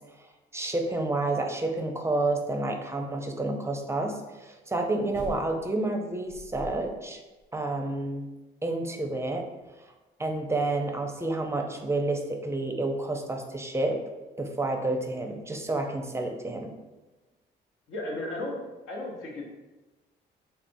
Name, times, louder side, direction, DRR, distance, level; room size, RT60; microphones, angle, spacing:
voice 1, 0.5-7.2 7.5-8.3 8.6-9.5 10.2-14.0 14.4-16.7, right 2 dB, 15° right, 4 dB, 0.5 m, -29 dB
sound 1, 5.1-5.8 6.3-7.1 7.4-7.5, left 2 dB, 55° left, 1.2 m, -41 dB
voice 2, 17.9-19.4, left 1 dB, 85° left, -2 dB, 1.1 m, -35 dB
4.2 x 3.3 x 2.6 m, 1.2 s
cardioid pair, 90°, 20 cm